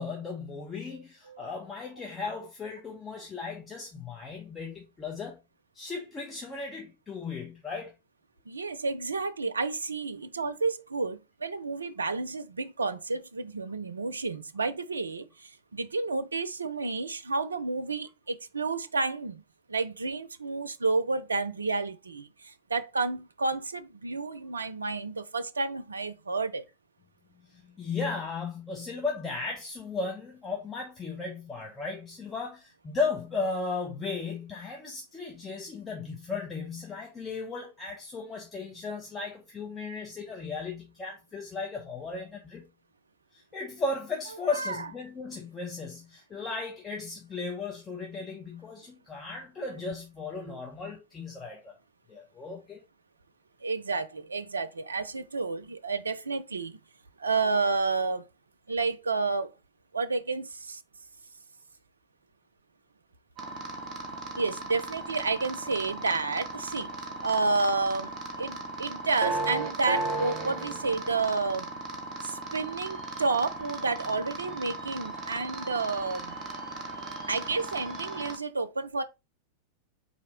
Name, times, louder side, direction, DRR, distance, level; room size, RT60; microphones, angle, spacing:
voice 1, 0.0-5.4 5.7-7.9 27.5-42.6 43.3-51.8 52.1-52.8, left 4 dB, 20° left, 0.8 m, -36 dB
voice 2, 8.5-19.4 19.7-26.6 44.5-44.8 50.4-50.6 53.6-56.8 57.2-58.2 58.7-59.5 59.9-60.8 64.4-66.9 67.2-68.1 68.4-71.7 72.2-76.4 77.3-79.0, right 3 dB, 75° right, 0.4 m, -30 dB
sound 1, 63.4-78.4, right 2 dB, 30° right, 1.1 m, -37 dB
4.1 x 2.8 x 4.1 m
figure-of-eight pair, 90°, 0 cm